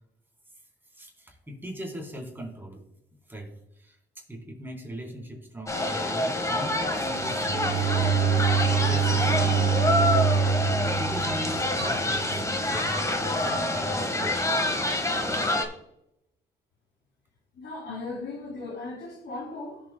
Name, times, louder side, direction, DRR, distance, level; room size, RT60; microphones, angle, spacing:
voice 1, 0.9-2.9 3.1-9.9 10.8-14.6, equal, 10° right, 3.6 m, -40 dB
sound 1, 5.7-15.7, left 1 dB, 15° left, 1.5 m, -27 dB
Bowed string instrument, 7.1-12.3, right 7 dB, 75° right, 2.5 m, -26 dB
voice 2, 17.5-19.8, left 3 dB, 55° left, 3.5 m, -37 dB
16.5 x 7.4 x 2.2 m
cardioid pair, 90°, 20 cm